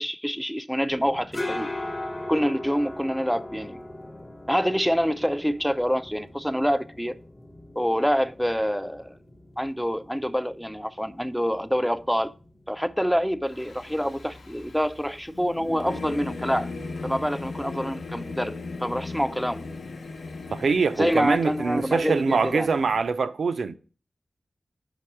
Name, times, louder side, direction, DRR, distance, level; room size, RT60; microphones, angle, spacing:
voice 1, 0.0-1.7 2.3-3.8 4.5-7.2 7.8-9.2 9.6-12.3 12.7-16.7 17.0-19.6 20.9-22.7, equal, ahead, 0.3 m, -26 dB
sound 1, 0.9-18.4, left 1 dB, 30° left, 0.7 m, -41 dB
Singing / Musical instrument, 13.5-23.0, left 3 dB, 90° left, 0.9 m, -38 dB
voice 2, 20.5-23.8, right 4 dB, 85° right, 0.4 m, -24 dB
5.3 x 4.9 x 4.4 m
wide cardioid pair, 110°, 0 cm